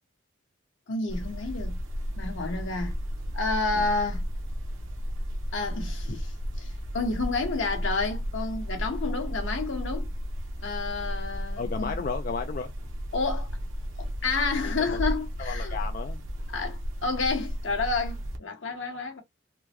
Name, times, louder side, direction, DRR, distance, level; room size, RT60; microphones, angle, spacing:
voice 1, 0.9-1.8 2.2-2.9 3.3-4.3 5.5-10.1 10.6-12.0 13.1-13.5 14.0-15.7 16.5-19.2, left 3 dB, 70° left, 1.2 m, -30 dB
sound 1, 1.1-18.4, equal, 75° right, 0.8 m, -33 dB
voice 2, 11.6-12.7 14.6-15.0 15.4-16.2, left 5 dB, 45° left, 0.3 m, -34 dB
3.6 x 2.1 x 2.9 m
head